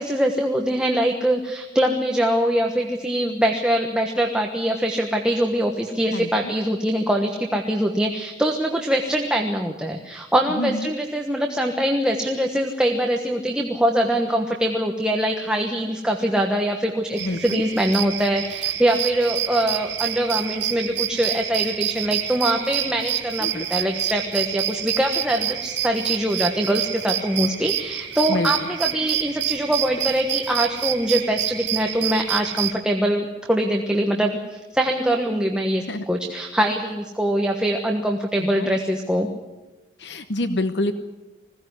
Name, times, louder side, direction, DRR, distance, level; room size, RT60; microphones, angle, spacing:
voice 1, 0.0-39.3, right 1 dB, 5° right, 1 dB, 1.3 m, -23 dB
voice 2, 6.1-6.5 10.5-10.9 17.2-17.6 23.4-23.7 28.3-28.7 35.9-36.0 38.4-38.7 40.0-40.9, left 1 dB, 75° left, 10 dB, 1.0 m, -27 dB
sound 1, 17.2-32.7, right 12 dB, 75° right, 1.6 m, -28 dB
20.5 x 16.5 x 9.6 m, 1.1 s
head